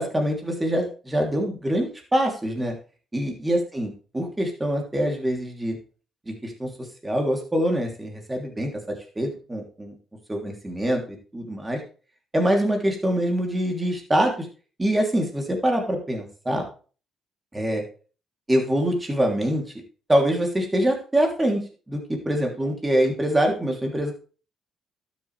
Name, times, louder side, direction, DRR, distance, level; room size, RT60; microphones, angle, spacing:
voice 1, 0.0-2.7 3.1-5.8 6.3-6.7 7.0-9.9 10.3-11.8 12.3-14.5 14.8-16.6 17.5-17.8 18.5-19.6 20.1-21.6 21.9-24.1, right 1 dB, 15° right, 2 dB, 3.1 m, -24 dB
12.0 x 7.6 x 3.4 m, 0.37 s
cardioid pair, 90°, 0 cm